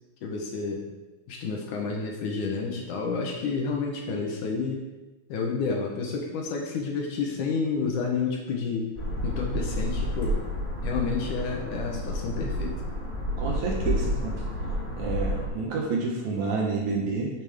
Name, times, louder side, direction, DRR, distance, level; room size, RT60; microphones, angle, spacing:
voice 1, 0.2-0.8 1.3-4.9 5.3-8.9 9.2-10.4 10.8-12.7, left 4 dB, 70° left, 1 dB, 2.4 m, -30 dB
sound 1, 8.9-15.5, equal, 30° left, 2.0 m, -30 dB
voice 2, 13.4-14.3 15.0-17.3, right 4 dB, 65° right, -1 dB, 2.4 m, -29 dB
9.1 x 8.0 x 3.6 m, 1.1 s
omnidirectional pair, 4.0 m